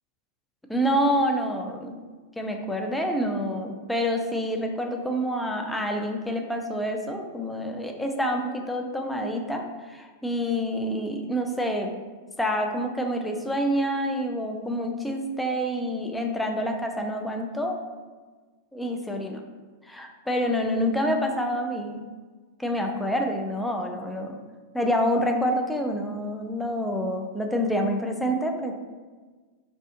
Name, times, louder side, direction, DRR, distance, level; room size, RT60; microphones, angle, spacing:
voice 1, 0.7-1.9 2.4-11.9 12.4-17.8 18.7-19.4 19.9-22.0 22.6-24.4 24.7-28.7, equal, 5° left, 2 dB, 0.3 m, -27 dB
2.4 x 2.4 x 2.4 m, 1.4 s
hypercardioid pair, 95°, 0 cm